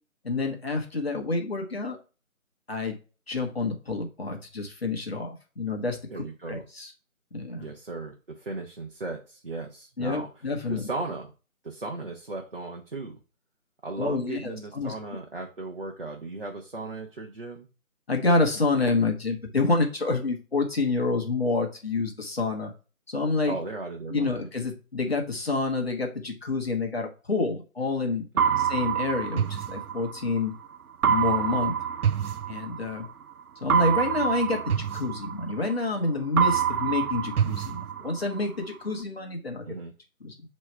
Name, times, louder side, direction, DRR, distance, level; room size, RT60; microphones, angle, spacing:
voice 1, 0.2-2.0 2.7-2.9 3.3-6.9 7.3-7.7 10.0-10.9 14.0-14.9 18.1-22.7 23.1-23.5 24.1-28.2 28.5-30.5 31.0-31.7 32.5-33.1 33.6-39.6 40.2-40.3, left 3 dB, 45° left, 2 dB, 1.3 m, -28 dB
voice 2, 6.1-6.7 7.5-10.3 10.6-11.3 11.6-13.2 13.8-17.7 23.5-24.5 28.3-28.7 39.6-39.9, right 3 dB, 40° right, 0 dB, 0.9 m, -36 dB
sound 1, 28.4-30.4 31.0-33.1 33.7-36.0 36.4-38.4, right 8 dB, 90° right, 0.6 m, -26 dB
6.8 x 3.2 x 4.4 m, 0.33 s
figure-of-eight pair, 175°, 42 cm